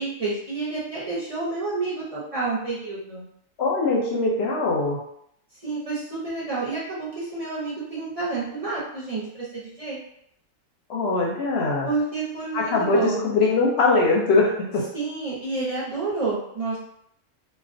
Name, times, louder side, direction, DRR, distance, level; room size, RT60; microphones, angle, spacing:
voice 1, 0.0-3.2 5.6-10.0 11.8-13.3 14.9-16.8, right 3 dB, 40° right, -8 dB, 0.5 m, -29 dB
voice 2, 3.6-5.0 10.9-11.9 12.5-14.8, left 3 dB, 65° left, -2 dB, 0.7 m, -22 dB
2.3 x 2.1 x 2.5 m, 0.72 s
omnidirectional pair, 1.4 m